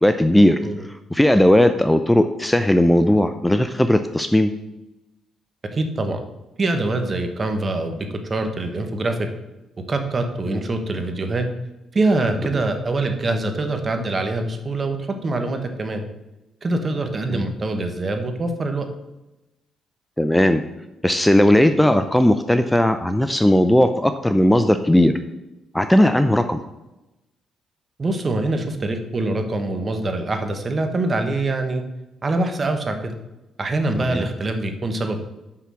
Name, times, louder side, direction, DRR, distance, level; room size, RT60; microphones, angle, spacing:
voice 1, 0.0-0.6 1.1-4.5 10.5-10.6 17.3-17.4 20.2-20.6 21.0-25.1 25.7-26.6 34.0-34.3, left 1 dB, 5° left, 9 dB, 0.4 m, -17 dB
voice 2, 5.7-6.2 6.6-9.3 9.9-11.5 11.9-16.0 16.6-18.9 28.0-31.8 32.2-33.1 33.6-35.2, right 2 dB, 35° right, 6 dB, 1.2 m, -24 dB
5.9 x 5.8 x 6.2 m, 0.97 s
cardioid pair, 90°, 0 cm